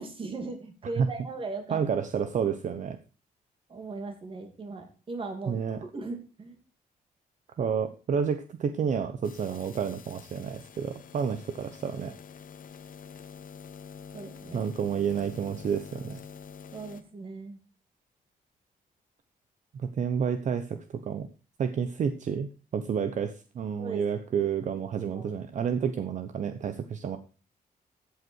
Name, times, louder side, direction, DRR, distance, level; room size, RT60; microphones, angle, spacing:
voice 1, 0.0-1.8 3.7-6.6 14.1-14.7 16.7-17.6 23.8-24.5 25.0-25.3, right 3 dB, 35° right, 5 dB, 2.8 m, -39 dB
voice 2, 1.7-3.0 5.5-5.8 7.6-12.1 14.5-16.2 19.7-20.8 21.0-21.3 21.6-27.2, right 7 dB, 55° right, 9 dB, 0.9 m, -30 dB
sound 1, 9.2-17.0, left 7 dB, 65° left, 1.2 m, -47 dB
14.5 x 8.2 x 4.6 m, 0.35 s
wide cardioid pair, 175°, 15 cm